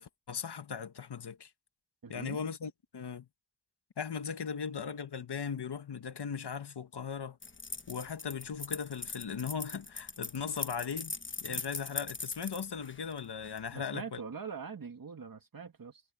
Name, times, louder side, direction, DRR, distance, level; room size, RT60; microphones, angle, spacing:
voice 1, 0.0-1.5 2.1-3.3 4.0-7.4 7.9-11.1 11.4-14.2, left 6 dB, 85° left, 1.6 m, -38 dB
voice 2, 2.0-2.4 13.7-16.0, right 6 dB, 60° right, 2.1 m, -43 dB
sound 1, 7.4-13.7, left 4 dB, 30° left, 1.1 m, -41 dB
wide cardioid pair, 90°, 39 cm